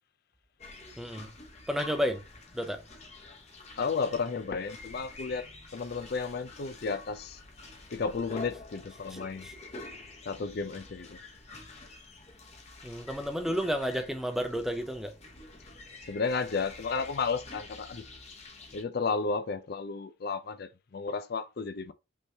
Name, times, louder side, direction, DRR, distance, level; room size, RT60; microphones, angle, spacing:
sound 1, 0.6-18.8, left 2 dB, 30° left, 1.0 m, -48 dB
voice 1, 1.0-1.3 1.7-2.2 2.5-2.8 9.1-9.5 12.8-15.1, equal, ahead, 0.6 m, -32 dB
voice 2, 3.8-5.4 5.7-7.4 7.9-9.5 10.3-11.2 16.1-18.0 18.7-21.9, left 4 dB, 50° left, 0.4 m, -33 dB
5.5 x 3.2 x 2.8 m
head